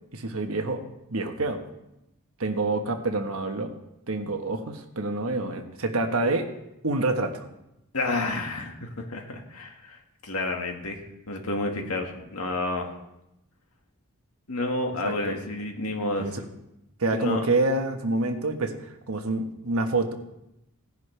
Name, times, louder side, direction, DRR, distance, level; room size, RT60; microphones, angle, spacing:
voice 1, 0.1-1.6 2.4-3.7 4.1-6.5 6.8-7.4 15.0-15.4 16.2-16.4 17.0-18.8 19.1-20.1, right 2 dB, 70° right, 5 dB, 1.3 m, -27 dB
voice 2, 7.9-12.9 14.5-16.3 17.1-17.5, left 2 dB, 85° left, 3 dB, 1.8 m, -30 dB
17.5 x 10.5 x 3.4 m, 0.87 s
head